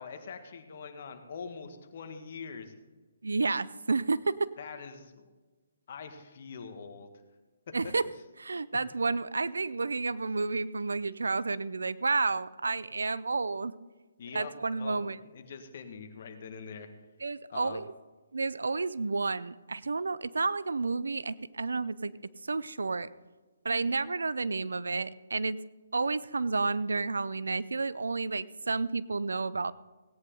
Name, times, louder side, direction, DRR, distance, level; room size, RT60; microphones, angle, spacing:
voice 1, 0.0-2.7 4.6-5.3 5.9-7.1 7.7-7.9 8.7-8.8 14.2-16.9 17.5-17.8, left 5 dB, 50° left, 7 dB, 1.7 m, -43 dB
voice 2, 3.2-4.5 7.7-8.1 8.4-13.8 14.3-15.2 17.2-17.8 18.3-22.1 22.5-23.1 23.6-25.6 25.9-29.7, right 3 dB, 80° right, 17 dB, 0.5 m, -31 dB
17.5 x 9.6 x 3.9 m, 1.3 s
figure-of-eight pair, 145°, 0 cm